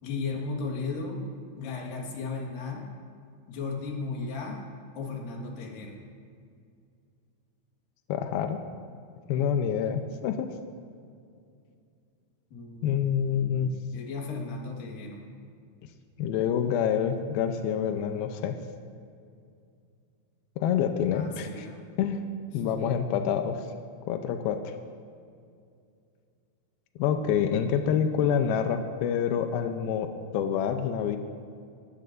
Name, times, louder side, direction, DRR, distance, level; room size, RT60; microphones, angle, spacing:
voice 1, 0.0-1.3 1.6-2.9 3.5-4.6 4.9-6.0 12.5-15.2 21.1-21.8 22.6-22.8, left 4 dB, 60° left, 0 dB, 3.1 m, -36 dB
voice 2, 8.1-8.6 9.3-10.5 12.8-13.7 16.2-18.6 20.6-21.7 22.0-22.2 22.5-23.6 24.1-24.6 27.0-30.1 30.3-31.2, left 8 dB, 90° left, 6 dB, 2.2 m, -27 dB
21.0 x 15.5 x 2.6 m, 2.3 s
omnidirectional pair, 5.2 m